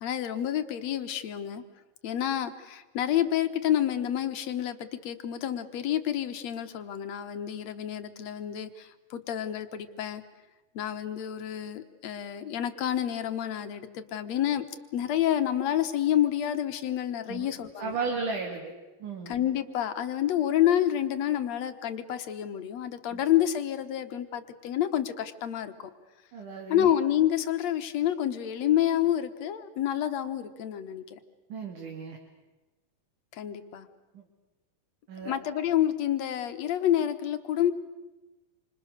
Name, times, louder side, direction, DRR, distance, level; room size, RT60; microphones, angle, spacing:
voice 1, 0.0-1.6 2.0-10.2 10.8-14.6 14.9-18.0 19.3-25.9 26.7-31.2 33.3-33.9 35.2-37.7, left 11 dB, 60° left, 9 dB, 2.1 m, -28 dB
voice 2, 17.8-18.7 19.0-19.3 23.1-23.2 26.3-26.9 31.5-32.2 34.1-34.2 35.1-35.4, right 4 dB, 65° right, 1 dB, 3.9 m, -34 dB
28.0 x 26.0 x 6.6 m, 1.1 s
omnidirectional pair, 4.0 m